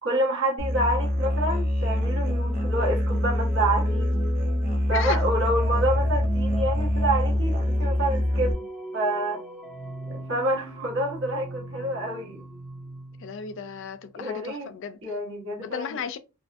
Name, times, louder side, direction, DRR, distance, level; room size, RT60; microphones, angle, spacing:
voice 1, 0.0-4.1 4.9-8.7 8.9-9.4 10.1-12.4 14.1-14.7 15.0-16.0, right 1 dB, 65° right, 1.2 m, -28 dB
Musical instrument, 0.6-8.5, left 1 dB, 40° right, 0.7 m, -25 dB
sound 1, 2.0-13.9, right 1 dB, 5° right, 0.6 m, -39 dB
voice 2, 4.9-5.2 13.2-15.0 15.6-16.2, left 6 dB, 60° left, 0.4 m, -34 dB
2.6 x 2.5 x 2.5 m
head